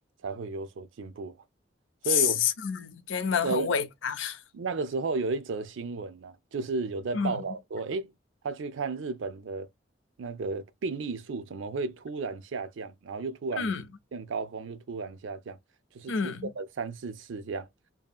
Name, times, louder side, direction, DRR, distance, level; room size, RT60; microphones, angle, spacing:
voice 1, 0.2-1.4 2.0-2.5 3.4-3.7 4.5-8.1 8.4-9.7 10.2-13.7 14.1-15.6 15.9-17.7, right 4 dB, 80° right, 0.5 m, -33 dB
voice 2, 2.1-4.4 7.1-7.4 13.6-13.9 16.1-16.5, left 7 dB, 80° left, 0.5 m, -28 dB
2.7 x 2.6 x 2.3 m
head